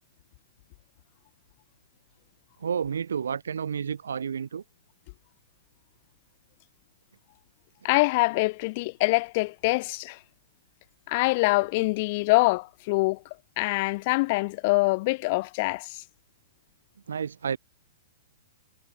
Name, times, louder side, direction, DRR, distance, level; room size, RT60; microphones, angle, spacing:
voice 1, 2.6-4.6 17.1-17.6, right 7 dB, 70° right, 3.7 m, -30 dB
voice 2, 7.8-10.2 11.1-13.2 13.6-16.0, left 24 dB, 45° left, 1.4 m, -24 dB
figure-of-eight pair, 110°, 0 cm